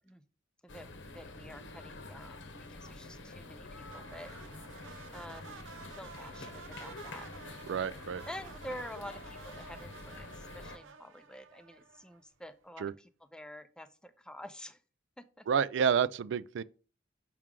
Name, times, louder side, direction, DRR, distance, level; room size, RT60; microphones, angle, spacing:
voice 1, 0.6-2.4 2.7-4.3 5.1-5.7 6.0-7.3 8.3-14.8 15.2-15.5, equal, 5° left, 0.4 m, -48 dB
sound 1, 0.7-10.8, left 2 dB, 70° left, 0.9 m, -47 dB
sound 2, 3.9-12.3, right 5 dB, 85° right, 0.7 m, -52 dB
voice 2, 7.7-8.2 12.8-12.9 15.5-16.6, right 7 dB, 65° right, 0.3 m, -29 dB
6.0 x 6.0 x 3.7 m
head